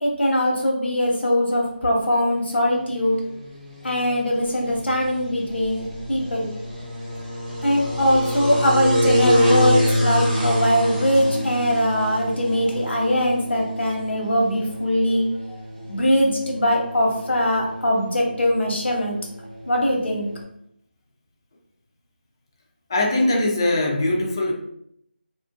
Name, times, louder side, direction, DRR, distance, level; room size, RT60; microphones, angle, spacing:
voice 1, 0.0-3.2 3.8-6.5 7.6-15.3 15.9-19.2 19.6-20.3, equal, 80° left, -1 dB, 0.9 m, -21 dB
sound 1, 2.4-20.4, equal, 25° right, 0.8 m, -27 dB
voice 2, 22.9-24.5, left 1 dB, 25° left, 1 dB, 0.3 m, -21 dB
2.4 x 2.4 x 2.4 m, 0.73 s
figure-of-eight pair, 170°, 6 cm